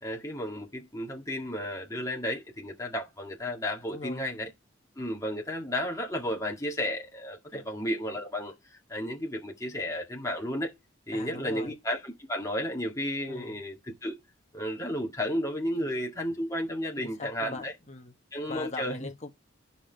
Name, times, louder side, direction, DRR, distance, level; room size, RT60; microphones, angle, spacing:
voice 1, 0.0-4.5 5.0-8.5 8.9-10.7 11.1-14.2 14.5-17.7 18.3-19.1, equal, 15° left, 1.9 m, -33 dB
voice 2, 3.9-4.2 7.5-7.6 11.1-11.7 13.3-13.6 15.8-15.9 17.0-18.1 18.5-19.3, left 3 dB, 35° left, 1.3 m, -41 dB
9.8 x 5.9 x 3.4 m
head